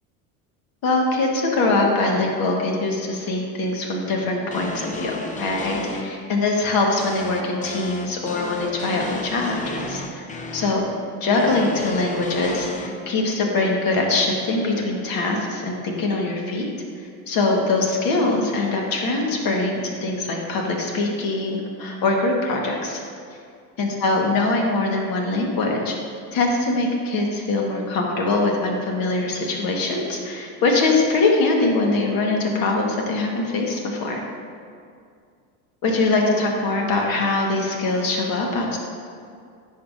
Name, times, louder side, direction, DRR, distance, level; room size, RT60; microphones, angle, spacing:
voice 1, 0.8-10.3 10.5-10.8 11.2-16.7 17.3-23.0 23.8-25.9 26.3-34.2 35.8-38.8, left 2 dB, 50° left, 0 dB, 1.5 m, -22 dB
sound 1, 4.5-6.0 7.0-10.7 11.4-12.9, left 2 dB, 20° left, 0.6 m, -33 dB
10.0 x 5.7 x 2.6 m, 2.3 s
supercardioid pair, 95°, 43 cm